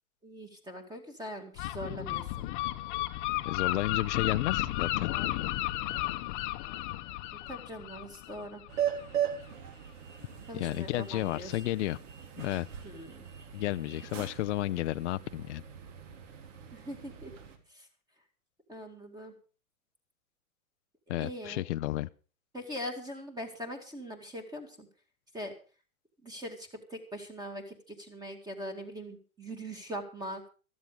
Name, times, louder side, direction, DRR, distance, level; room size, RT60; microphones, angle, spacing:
voice 1, 0.2-2.5 7.3-8.6 10.5-11.6 12.8-13.2 16.7-17.3 17.7-17.9 18.7-19.3 21.1-21.6 22.5-24.9 25.3-25.5 26.2-30.5, equal, 10° right, 2.1 m, -42 dB
Gull seagull, 1.6-9.1, left 16 dB, 35° left, 1.1 m, -33 dB
voice 2, 3.4-5.1 10.5-12.0 12.4-12.7 13.5-15.6 21.1-22.1, left 15 dB, 55° left, 0.6 m, -32 dB
sound 1, 8.7-17.6, right 9 dB, 55° right, 3.1 m, -39 dB
13.5 x 13.5 x 5.2 m
hypercardioid pair, 150°, 43 cm